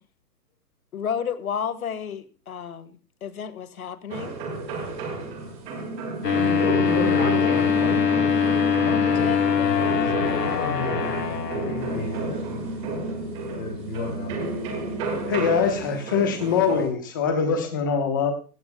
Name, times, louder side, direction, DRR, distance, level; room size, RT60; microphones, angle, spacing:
voice 1, 0.9-4.4 7.4-7.7 8.9-9.4, left 7 dB, 60° left, 13 dB, 1.6 m, -32 dB
sound 1, 4.1-16.9, right 3 dB, 10° right, 1.8 m, -31 dB
sound 2, 6.2-15.8, left 7 dB, 85° left, 3.6 m, -25 dB
voice 2, 6.2-8.4 8.8-12.5 13.5-14.5, left 3 dB, 30° left, -3 dB, 5.5 m, -33 dB
voice 3, 15.3-18.3, left 6 dB, 15° left, 7 dB, 1.0 m, -23 dB
16.5 x 15.5 x 2.2 m, 0.37 s
hypercardioid pair, 175°, 48 cm